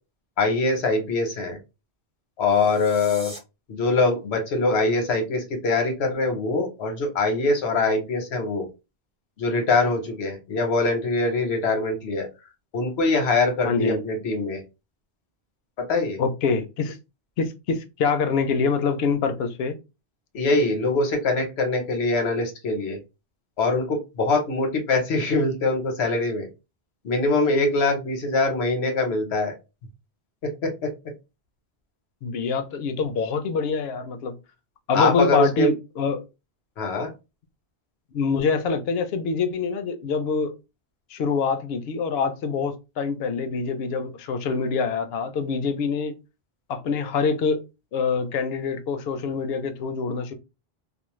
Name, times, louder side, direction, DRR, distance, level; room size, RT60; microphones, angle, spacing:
voice 1, 0.4-1.6 2.4-3.3 3.7-8.7 9.4-12.3 12.7-14.6 15.8-16.2 20.3-23.0 23.6-26.5 27.0-29.5 30.4-30.9 34.9-35.7 36.8-37.1, left 3 dB, 90° left, 1.1 m, -23 dB
sound 1, 2.4-3.4, equal, 5° right, 0.6 m, -42 dB
voice 2, 13.6-14.1 16.2-17.0 17.4-19.8 32.2-34.4 34.9-36.2 38.1-40.5 41.1-46.1 46.7-47.6 47.9-50.3, left 4 dB, 75° left, 0.8 m, -25 dB
2.4 x 2.0 x 3.0 m
omnidirectional pair, 1.1 m